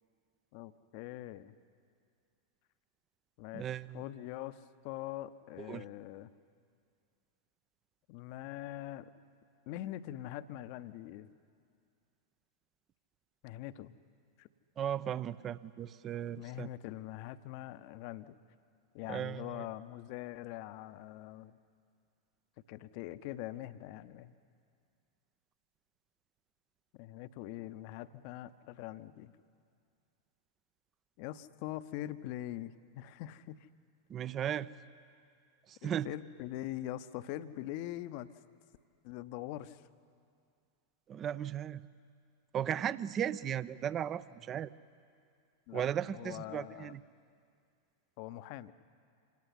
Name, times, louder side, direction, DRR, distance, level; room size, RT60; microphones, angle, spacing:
voice 1, 0.5-1.6 3.4-3.7 3.9-6.3 8.1-9.1 9.7-11.3 13.4-13.9 14.4-14.5 16.4-18.3 18.9-21.6 22.7-24.3 26.9-29.3 31.2-33.7 34.4-34.6 35.8-38.3 39.0-39.8 45.7-45.8 46.1-46.9 48.2-48.7, left 14 dB, 45° left, 14 dB, 0.8 m, -43 dB
voice 2, 3.5-4.0 5.7-5.8 14.8-16.7 19.1-19.7 34.1-34.7 35.7-36.1 41.1-41.9 42.5-44.7 45.7-47.0, right 9 dB, 30° right, 17 dB, 0.6 m, -36 dB
26.5 x 18.0 x 10.0 m, 2.3 s
figure-of-eight pair, 90°, 0 cm